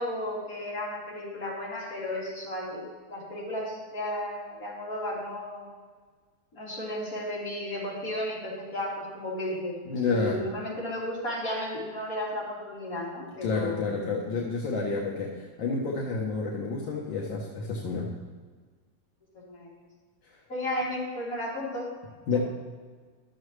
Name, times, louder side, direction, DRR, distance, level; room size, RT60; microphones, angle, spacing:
voice 1, 0.0-5.7 6.5-13.8 19.3-19.7 20.5-21.9, left 1 dB, 50° left, -7 dB, 3.4 m, -34 dB
voice 2, 9.9-10.4 13.4-15.3 15.6-18.1 22.3-22.4, left 4 dB, 85° left, -3 dB, 1.8 m, -29 dB
12.5 x 7.0 x 3.2 m, 1.5 s
omnidirectional pair, 2.0 m